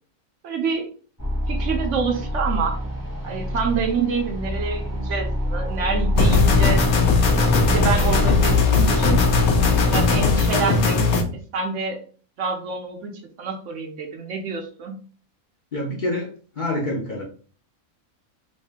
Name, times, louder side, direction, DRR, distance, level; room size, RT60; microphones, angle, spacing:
voice 1, 0.4-0.9 1.5-2.7 3.2-6.8 7.4-9.2 9.8-12.0 12.4-15.0, right 5 dB, 65° right, 4 dB, 0.9 m, -27 dB
sound 1, 1.2-10.4, equal, 15° left, 0.8 m, -26 dB
sound 2, 6.2-11.2, left 4 dB, 85° left, 1.1 m, -19 dB
voice 2, 15.7-17.2, left 1 dB, 45° left, -2 dB, 0.7 m, -27 dB
3.2 x 2.6 x 3.4 m, 0.41 s
omnidirectional pair, 1.5 m